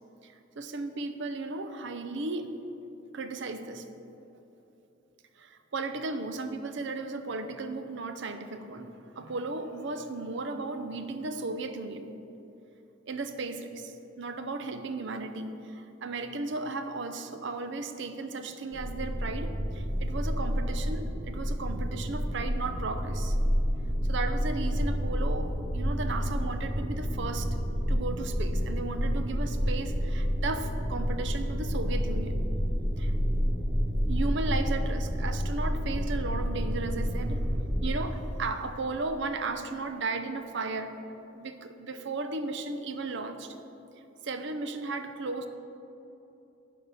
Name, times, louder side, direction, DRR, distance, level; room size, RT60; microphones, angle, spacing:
voice 1, 0.2-2.5 3.1-3.9 5.4-12.1 13.1-23.4 24.1-27.5 27.9-32.5 33.0-33.1 34.1-37.4 37.8-41.0 41.4-43.6 44.2-45.5, right 3 dB, 65° right, 9 dB, 0.6 m, -35 dB
sound 1, 18.7-37.9, equal, ahead, 1.7 m, -29 dB
10.5 x 4.6 x 5.5 m, 2.9 s
head